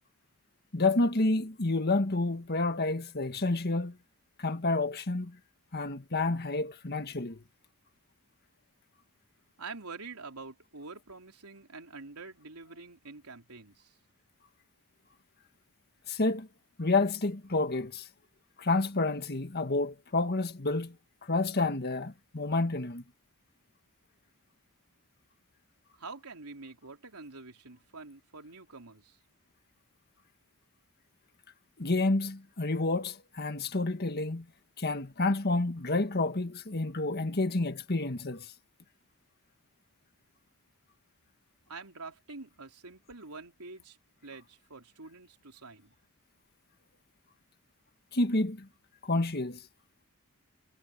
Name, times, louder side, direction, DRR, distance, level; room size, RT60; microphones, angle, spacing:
voice 1, 0.7-4.0 4.4-5.4 5.7-7.4 16.1-16.5 16.8-18.1 18.6-20.9 21.2-23.0 31.8-34.4 34.8-38.5 48.1-48.7 49.0-49.6, left 2 dB, 45° left, 1.7 m, -29 dB
voice 2, 9.6-14.0 25.9-29.2 41.7-44.0 44.2-45.9, right 3 dB, 80° right, 3.7 m, -46 dB
head